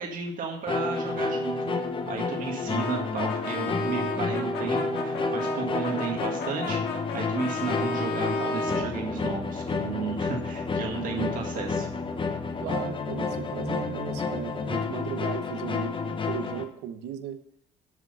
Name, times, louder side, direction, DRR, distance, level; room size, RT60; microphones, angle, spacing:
voice 1, 0.0-6.8 7.1-11.9, right 5 dB, 55° right, 2 dB, 1.8 m, -33 dB
sound 1, 0.7-16.6, left 3 dB, 30° left, 1.0 m, -30 dB
Brass instrument, 2.7-8.9, left 3 dB, 70° left, 1.8 m, -34 dB
voice 2, 12.6-17.4, right 9 dB, 85° right, 10 dB, 0.9 m, -36 dB
7.3 x 6.2 x 6.8 m, 0.70 s
cardioid pair, 110°, 17 cm